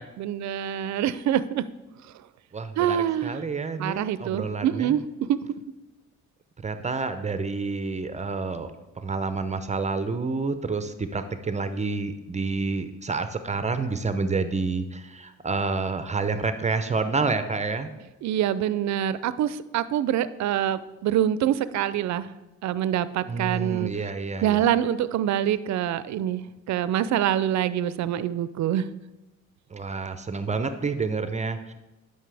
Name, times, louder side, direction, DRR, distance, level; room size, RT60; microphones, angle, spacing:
voice 1, 0.2-1.6 2.8-3.4 3.8-5.0 5.3-5.4 18.2-22.3 22.6-23.9 24.4-26.4 26.7-28.9, right 11 dB, 65° right, 15 dB, 0.5 m, -25 dB
voice 2, 2.5-5.0 6.6-17.9 23.3-24.7 29.7-31.7, right 4 dB, 25° right, 10 dB, 0.6 m, -29 dB
11.0 x 5.5 x 3.4 m, 1.0 s
cardioid pair, 90°, 30 cm